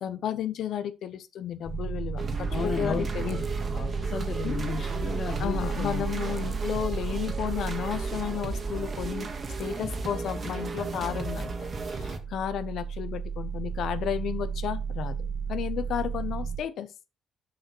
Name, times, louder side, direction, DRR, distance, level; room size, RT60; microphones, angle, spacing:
voice 1, 0.0-3.4 4.4-4.6 5.4-9.3 9.6-16.9, left 9 dB, 75° left, 0.9 m, -33 dB
sound 1, 1.7-16.6, right 6 dB, 20° left, 1.8 m, -34 dB
sound 2, 2.2-12.2, right 3 dB, 40° right, 1.7 m, -34 dB
voice 2, 2.5-3.1 3.7-6.0, left 6 dB, 50° left, 1.0 m, -33 dB
7.1 x 5.3 x 4.4 m
cardioid pair, 90°, 0 cm